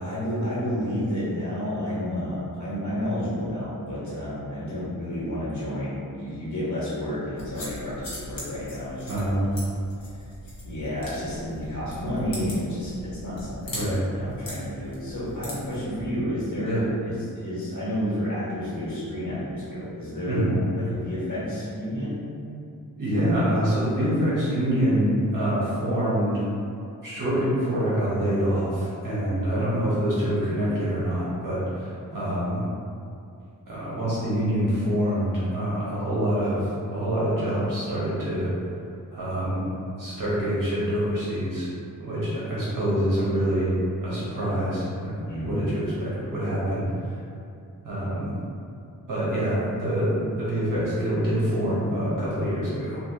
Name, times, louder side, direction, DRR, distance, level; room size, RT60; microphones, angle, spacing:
voice 1, 0.0-9.5 10.6-16.8 17.0-22.2 45.3-45.7, equal, 55° left, -10 dB, 1.4 m, -30 dB
sound 1, 7.4-16.1, left 1 dB, 75° left, 1.1 m, -40 dB
voice 2, 9.1-9.5 13.7-14.0 16.6-16.8 20.3-20.5 23.0-26.4 27.0-32.6 33.7-38.5 39.1-39.7 40.0-41.7 42.0-43.7 44.0-45.1 45.4-46.8 47.8-48.3 49.1-53.0, equal, 65° right, -9 dB, 1.4 m, -25 dB
3.3 x 2.8 x 2.9 m, 2.5 s
wide cardioid pair, 90°, 35 cm